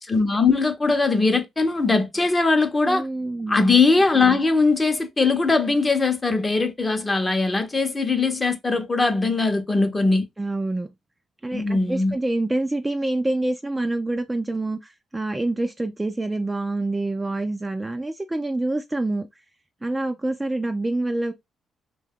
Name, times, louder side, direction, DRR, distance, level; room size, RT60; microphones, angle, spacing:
voice 1, 0.1-3.1 3.5-10.3 11.5-12.1, left 3 dB, 20° left, 0.7 m, -20 dB
voice 2, 2.9-3.7 10.4-10.9 11.4-19.3 19.8-21.3, right 2 dB, 15° right, 0.4 m, -26 dB
2.7 x 2.2 x 3.5 m
cardioid pair, 90°, 0 cm